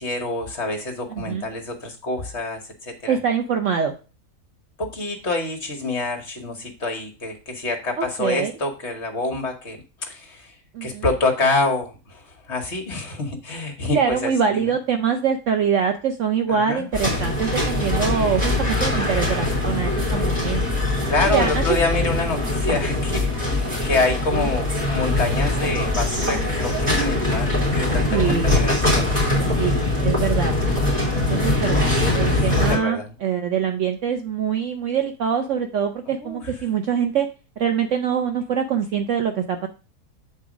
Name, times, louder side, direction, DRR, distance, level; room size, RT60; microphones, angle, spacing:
voice 1, 0.0-3.2 4.8-10.6 10.8-14.7 16.5-16.9 21.1-29.1 32.4-33.2 36.1-36.5, left 2 dB, 50° left, 4 dB, 1.4 m, -27 dB
voice 2, 1.2-1.5 3.1-3.9 8.0-8.5 10.7-11.0 13.9-20.6 21.3-21.8 28.1-28.6 29.6-29.8 30.0-30.5 31.3-37.3 37.6-39.7, right 7 dB, 65° right, 6 dB, 0.9 m, -24 dB
sound 1, 16.9-32.8, left 2 dB, 25° right, 3.0 m, -22 dB
7.8 x 4.1 x 4.9 m, 0.34 s
omnidirectional pair, 1.6 m